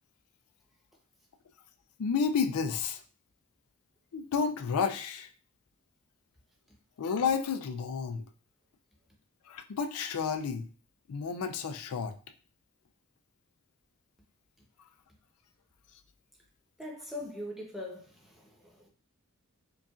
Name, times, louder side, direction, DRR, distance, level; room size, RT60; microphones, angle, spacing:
voice 1, 2.0-3.0 4.1-5.3 7.0-8.2 9.5-10.7 11.1-12.1, left 6 dB, 85° left, 0.4 m, -31 dB
voice 2, 16.8-18.9, left 1 dB, ahead, 0.8 m, -42 dB
5.2 x 2.4 x 2.4 m
head